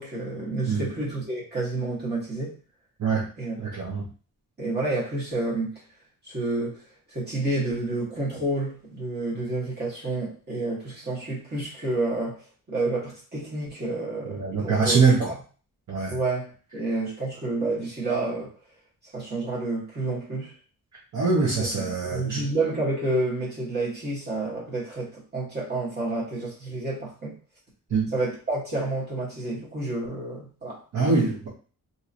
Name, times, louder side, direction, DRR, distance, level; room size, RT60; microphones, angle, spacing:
voice 1, 0.0-2.6 3.4-3.6 4.6-5.8 6.2-6.8 7.1-15.0 16.1-18.5 19.0-20.5 21.4-27.4 28.1-31.2, right 2 dB, 25° right, -6 dB, 1.3 m, -29 dB
voice 2, 3.6-4.0 14.3-15.3 15.9-16.1 21.1-22.4 27.9-28.1 30.9-31.5, right 4 dB, 50° right, -5 dB, 0.9 m, -23 dB
2.9 x 2.7 x 2.5 m, 0.36 s
wide cardioid pair, 180°, 37 cm